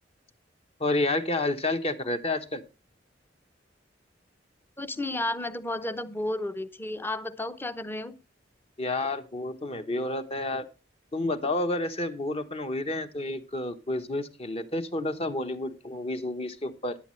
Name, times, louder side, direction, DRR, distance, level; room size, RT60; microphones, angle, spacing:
voice 1, 0.8-2.6 8.8-10.6 11.1-17.0, left 2 dB, 35° left, 9 dB, 1.1 m, -30 dB
voice 2, 4.8-8.2, left 1 dB, 10° left, 13 dB, 0.7 m, -32 dB
16.0 x 10.5 x 3.2 m, 0.29 s
head